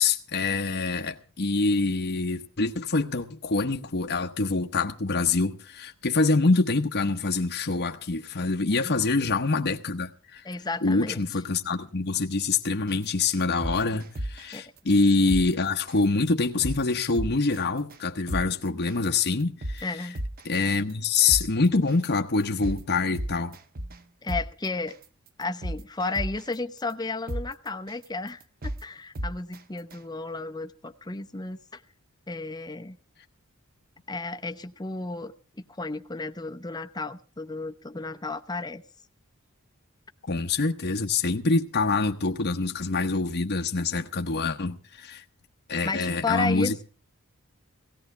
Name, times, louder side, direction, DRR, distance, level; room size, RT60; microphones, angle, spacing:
voice 1, 0.0-10.4 10.8-19.9 20.4-23.6 40.3-45.2 45.7-46.7, left 3 dB, 50° left, 1.1 m, -25 dB
voice 2, 10.4-11.2 14.5-14.6 19.8-20.2 24.2-24.9 25.4-31.8 32.3-33.0 34.1-38.8 45.8-46.7, left 3 dB, 20° left, 0.8 m, -33 dB
sound 1, 12.9-13.0 13.4-14.5 14.9-15.0 15.3-15.4 15.9-16.1 16.4-16.8 17.2-17.6 17.9-18.0 18.3-18.4 18.9-19.1 19.4-20.5 20.9-21.0 21.3-21.4 21.9-22.1 22.4-22.8 23.2-24.0 24.3-24.4 24.9-25.0 25.4-26.5 26.9-27.0 27.3-27.4 27.9-28.0 28.4-28.8 29.2-29.6 29.9-30.0, equal, 45° right, 0.9 m, -32 dB
17.5 x 17.0 x 3.3 m
head